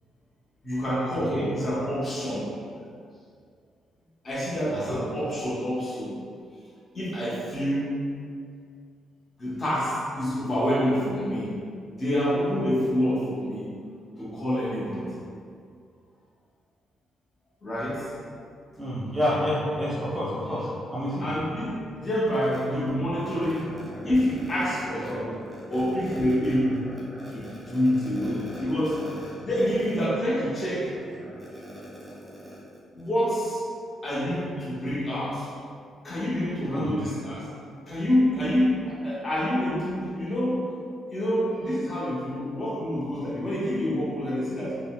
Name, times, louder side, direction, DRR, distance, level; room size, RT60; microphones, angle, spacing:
voice 1, 0.6-2.5 4.2-6.1 6.9-7.9 9.4-11.6 12.0-13.7 14.2-15.2 17.6-18.1 21.2-23.8 24.0-25.4 25.7-27.0 27.3-29.0 29.4-31.0 32.9-33.6 34.0-35.5 36.0-37.5 37.9-40.7 41.1-44.8, equal, 30° left, -7 dB, 0.8 m, -27 dB
voice 2, 18.8-21.3 24.0-24.1 25.2-25.3 27.2-27.5 28.5-28.6 31.2-32.6 36.7-36.9, equal, 10° right, -8 dB, 0.8 m, -30 dB
3.7 x 2.0 x 2.2 m, 2.2 s
cardioid pair, 90°, 0 cm